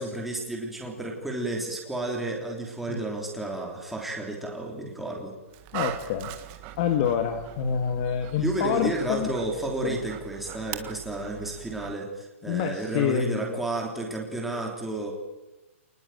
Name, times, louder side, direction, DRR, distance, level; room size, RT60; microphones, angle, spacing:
voice 1, 0.0-5.4 8.4-15.1, right 2 dB, ahead, -1 dB, 3.3 m, -32 dB
Dog, 5.5-11.9, right 13 dB, 25° right, 1.6 m, -41 dB
voice 2, 5.7-6.3 6.8-9.3 9.8-10.0 12.5-13.6, left 8 dB, 30° left, 6 dB, 1.8 m, -27 dB
28.5 x 20.0 x 9.2 m, 1.1 s
hypercardioid pair, 170°, 7 cm